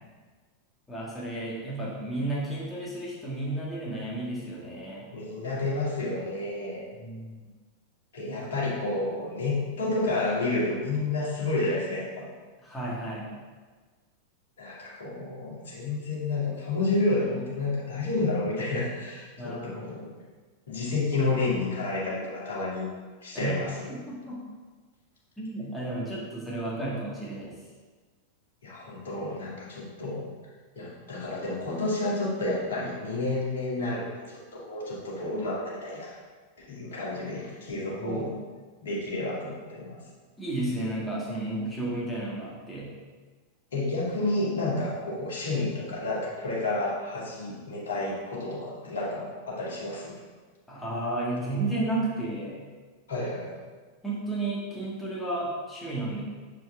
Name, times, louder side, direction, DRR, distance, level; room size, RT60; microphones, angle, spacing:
voice 1, 0.9-5.1 7.0-7.5 8.3-8.5 12.6-13.3 19.4-19.9 23.3-23.6 23.9-24.4 25.4-27.6 38.0-38.4 40.4-42.9 50.7-52.6 54.0-56.2, right 2 dB, 5° left, -6 dB, 1.6 m, -32 dB
voice 2, 5.1-6.8 8.1-12.3 14.6-20.1 20.7-22.9 23.2-23.7 28.6-30.3 30.8-36.2 36.6-38.3 38.8-40.0 43.7-50.1 53.1-53.6, left 2 dB, 60° left, -5 dB, 1.8 m, -30 dB
6.8 x 4.6 x 3.4 m, 1.4 s
figure-of-eight pair, 90°, 0 cm